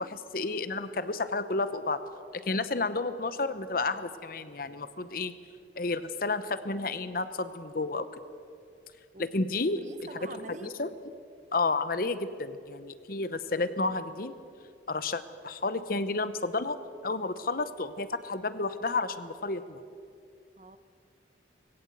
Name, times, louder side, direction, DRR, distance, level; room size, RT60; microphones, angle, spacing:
voice 1, 0.0-2.0 2.5-5.3 5.8-8.1 9.2-9.8 10.3-10.9 11.5-14.3 14.9-16.8 17.0-19.8, left 3 dB, 50° left, 12 dB, 0.8 m, -31 dB
voice 2, 9.8-10.7 20.6-20.8, right 2 dB, 40° right, 11 dB, 0.9 m, -45 dB
20.0 x 16.5 x 7.9 m, 2.4 s
head